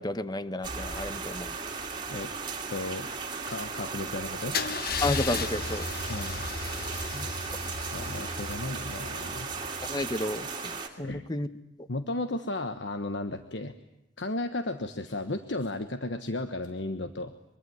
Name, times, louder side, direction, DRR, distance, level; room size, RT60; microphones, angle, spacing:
voice 1, 0.0-1.5 5.0-5.8 7.1-7.3 9.8-11.5, left 2 dB, 20° left, 13 dB, 1.0 m, -32 dB
sound 1, 0.6-10.9, right 5 dB, 25° right, 2.8 m, -36 dB
voice 2, 2.7-3.2 3.5-4.6 6.1-6.4 7.9-9.5 11.0-11.3 11.9-13.7 14.2-17.3, left 2 dB, 70° left, 9 dB, 1.2 m, -34 dB
Car / Engine starting / Idling, 4.5-10.4, left 4 dB, 55° left, 1.0 m, -35 dB
24.0 x 23.0 x 9.5 m, 0.85 s
head